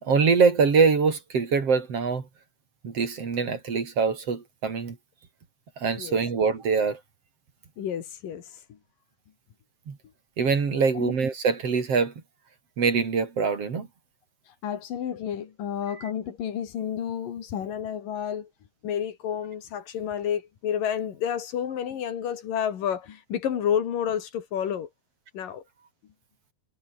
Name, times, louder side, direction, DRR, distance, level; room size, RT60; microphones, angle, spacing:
voice 1, 0.0-2.3 2.8-5.0 5.8-7.0 9.9-10.0 10.4-12.1 12.8-13.9 15.9-16.1, right 5 dB, 45° right, 3.9 m, -24 dB
voice 2, 7.8-8.4 11.0-11.1 14.6-18.5 18.8-24.9 25.3-25.6, left 9 dB, 80° left, 4.0 m, -30 dB
omnidirectional pair, 3.8 m